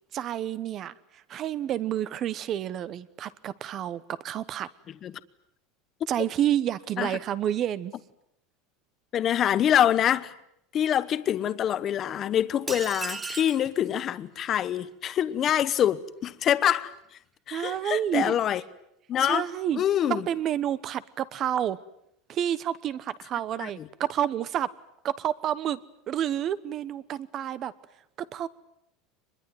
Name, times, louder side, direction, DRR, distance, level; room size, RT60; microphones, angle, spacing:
voice 1, 0.1-4.7 6.1-7.9 17.5-18.3 19.2-19.8 20.1-21.8 22.3-24.7 25.0-25.8 26.1-27.7 28.2-28.5, right 10 dB, 35° right, 1.0 m, -29 dB
voice 2, 9.1-10.3 10.7-16.9 17.5-18.6 19.1-19.4 19.8-20.2 23.6-23.7, left 10 dB, 30° left, 1.0 m, -25 dB
sound 1, 12.7-13.7, right 4 dB, 15° right, 1.2 m, -35 dB
25.0 x 21.5 x 9.5 m
supercardioid pair, 150°, 0 cm